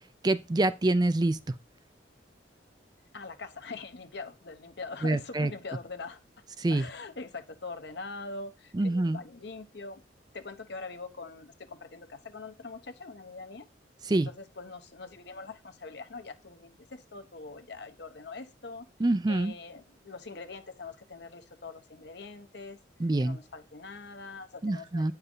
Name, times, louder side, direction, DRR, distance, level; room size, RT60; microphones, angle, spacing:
voice 1, 0.2-1.4 5.0-5.5 6.6-6.9 8.7-9.2 14.0-14.3 19.0-19.5 23.0-23.4 24.6-25.1, right 2 dB, 20° right, 0.4 m, -26 dB
voice 2, 3.1-6.2 6.7-10.0 10.3-13.7 14.1-18.9 19.3-22.8 23.2-25.1, left 3 dB, 60° left, 1.1 m, -43 dB
9.4 x 5.6 x 3.9 m
head